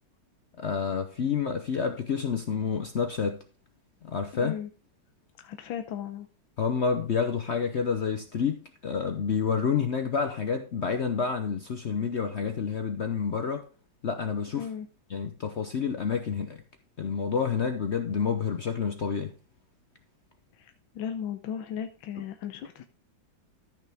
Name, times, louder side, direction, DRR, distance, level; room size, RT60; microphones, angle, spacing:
voice 1, 0.6-3.4 4.0-4.5 6.6-13.7 14.0-14.6 15.1-16.6 17.0-19.3, left 6 dB, 60° left, 0.7 m, -29 dB
voice 2, 4.3-4.7 5.4-6.3 14.5-14.9 20.6-22.8, left 9 dB, 85° left, 1.5 m, -36 dB
13.5 x 6.0 x 3.5 m
omnidirectional pair, 2.1 m